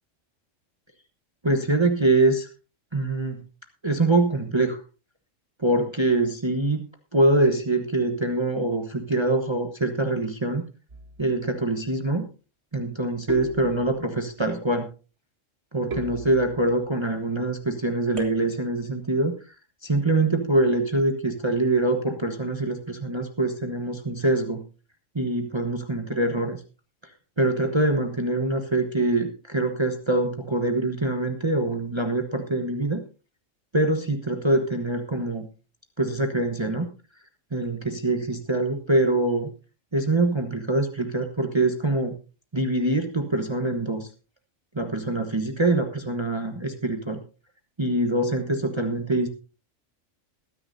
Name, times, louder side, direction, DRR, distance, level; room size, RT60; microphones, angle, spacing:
voice 1, 1.4-2.5 2.9-3.4 3.8-4.8 5.6-6.8 7.1-10.6 11.2-12.2 12.7-14.9 15.7-19.5 19.8-24.6 25.1-26.6 27.4-33.0 33.7-35.5 36.0-36.9 37.5-39.5 39.9-42.1 42.5-44.1 44.7-47.2 47.8-49.3, right 2 dB, 20° right, 5 dB, 1.2 m, -24 dB
sound 1, 10.9-11.4 13.3-14.2 15.9-16.9 18.2-18.9, equal, 55° right, 2.1 m, -37 dB
22.0 x 9.8 x 2.7 m, 0.34 s
omnidirectional pair, 1.3 m